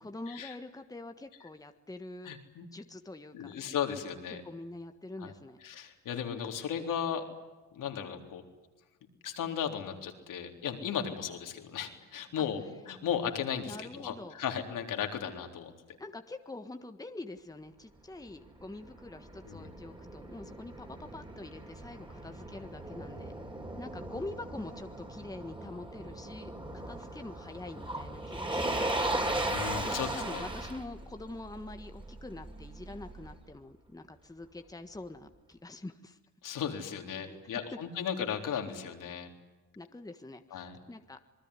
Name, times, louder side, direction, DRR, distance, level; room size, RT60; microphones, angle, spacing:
voice 1, 0.0-2.3 2.6-3.5 4.4-5.6 13.7-14.3 16.0-23.3 23.8-28.8 29.8-36.2 37.2-37.4 39.7-41.2, left 2 dB, 10° left, 7 dB, 1.6 m, -45 dB
voice 2, 2.2-2.7 3.3-4.4 5.2-5.3 5.6-7.2 7.7-8.4 9.2-12.6 12.9-15.7 19.5-19.7 29.5-30.4 36.4-39.3 40.5-40.8, left 8 dB, 70° left, 4 dB, 3.9 m, -36 dB
Motor vehicle (road), 18.3-33.3, right 1 dB, 15° right, 4.4 m, -38 dB
27.0 x 20.5 x 9.9 m, 1.2 s
cardioid pair, 85°, 33 cm